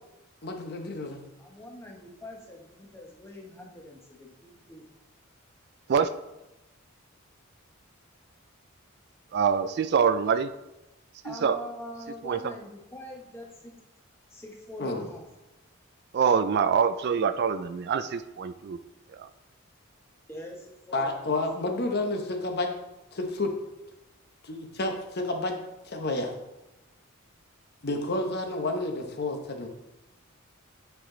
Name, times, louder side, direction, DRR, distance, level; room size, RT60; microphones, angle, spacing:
voice 1, 0.4-1.2 14.8-15.1 20.9-22.7 23.1-23.5 24.4-25.6 25.8-26.3 27.8-29.7, left 2 dB, 50° left, 4 dB, 1.0 m, -30 dB
voice 2, 1.4-4.9 11.2-13.7 14.3-15.2 20.3-21.4, equal, 10° left, 0 dB, 1.1 m, -44 dB
voice 3, 9.3-10.5 11.3-11.6 12.2-12.4 16.1-18.8 19.2-19.3, right 6 dB, 50° right, 12 dB, 0.3 m, -25 dB
9.2 x 4.8 x 3.8 m, 0.97 s
head